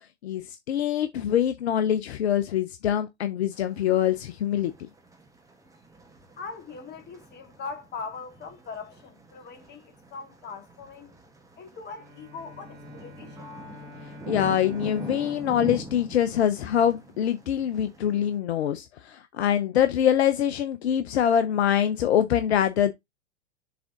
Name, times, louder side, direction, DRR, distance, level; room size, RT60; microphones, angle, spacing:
voice 1, 0.2-4.7 14.3-22.9, left 10 dB, 65° left, 0.9 m, -24 dB
sound 1, 3.5-18.4, right 2 dB, 10° right, 1.6 m, -44 dB
voice 2, 6.4-11.1 11.6-13.5, left 4 dB, 30° left, 2.2 m, -41 dB
Bowed string instrument, 11.9-17.1, left 3 dB, 30° right, 2.3 m, -48 dB
6.9 x 3.7 x 3.8 m
hypercardioid pair, 100°, 35 cm